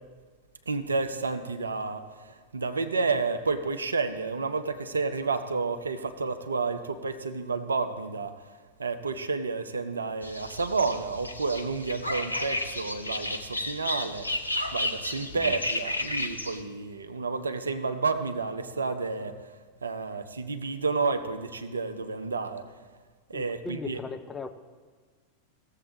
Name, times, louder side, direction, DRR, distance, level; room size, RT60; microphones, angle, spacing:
voice 1, 0.7-14.3 14.7-22.6 23.3-24.0, right 4 dB, 75° right, 9 dB, 0.6 m, -30 dB
sound 1, 10.2-16.6, left 1 dB, 85° left, 0.7 m, -32 dB
voice 2, 23.3-24.5, left 4 dB, 15° left, 7 dB, 0.6 m, -38 dB
16.5 x 7.4 x 4.0 m, 1.5 s
figure-of-eight pair, 90°, 0 cm